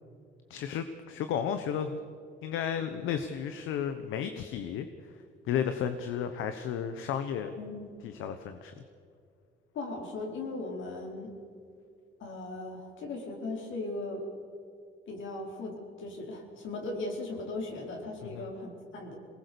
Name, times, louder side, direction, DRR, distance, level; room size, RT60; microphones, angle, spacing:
voice 1, 0.5-2.0 2.4-4.9 5.5-7.5 8.0-8.7 18.2-18.5, left 8 dB, 90° left, 9 dB, 1.0 m, -33 dB
voice 2, 7.6-7.9 9.7-11.3 12.2-14.2 15.1-19.2, left 2 dB, 75° left, 1 dB, 4.4 m, -38 dB
22.5 x 19.5 x 6.9 m, 2.3 s
cardioid pair, 90°, 20 cm